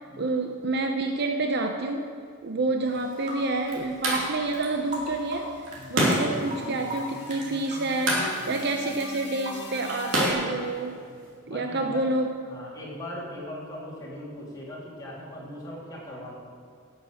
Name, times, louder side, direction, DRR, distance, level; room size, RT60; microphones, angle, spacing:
voice 1, 0.2-2.0 2.4-5.5 5.9-11.0 11.5-12.3, right 2 dB, 55° right, 4 dB, 0.7 m, -28 dB
sound 1, 2.8-11.3, right 1 dB, 70° right, 3.3 m, -31 dB
sound 2, 2.9-3.4 3.7-6.6 6.9-9.1 9.5-10.0, right 1 dB, 35° right, 2.5 m, -38 dB
sound 3, 4.0-10.3, left 2 dB, 55° left, 1.3 m, -43 dB
voice 2, 11.5-12.0 12.5-16.3, left 1 dB, 20° left, -6 dB, 3.1 m, -40 dB
11.5 x 7.3 x 7.8 m, 2.2 s
head